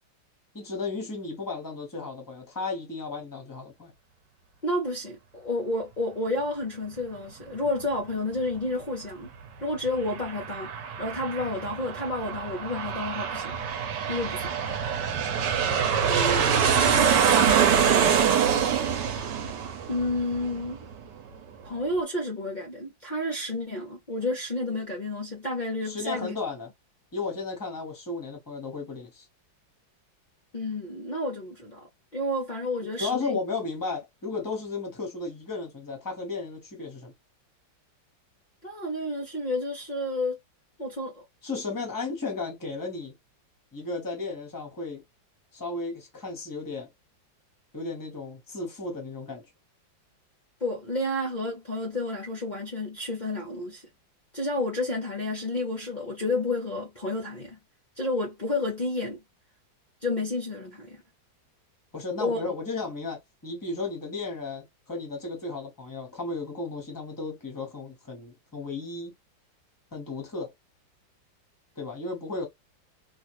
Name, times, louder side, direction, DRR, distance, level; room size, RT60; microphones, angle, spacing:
voice 1, 0.5-3.9 16.0-17.4 25.8-26.7 27.1-29.2 33.0-37.1 41.4-43.1 43.7-45.0 45.5-46.9 47.7-49.4 61.9-69.1 69.9-70.5 71.8-72.5, left 3 dB, 15° left, 0.6 m, -34 dB
voice 2, 4.6-9.3 9.6-10.7 11.0-13.6 14.1-14.6 19.9-20.8 21.6-26.4 30.5-31.9 32.1-33.4 38.6-40.4 40.8-41.2 50.6-53.8 54.3-57.6 58.0-59.2 60.0-61.0 62.2-62.5, left 2 dB, 60° left, 0.4 m, -30 dB
Aircraft, 9.9-21.0, right 7 dB, 70° right, 1.3 m, -25 dB
3.1 x 2.4 x 2.9 m
omnidirectional pair, 2.1 m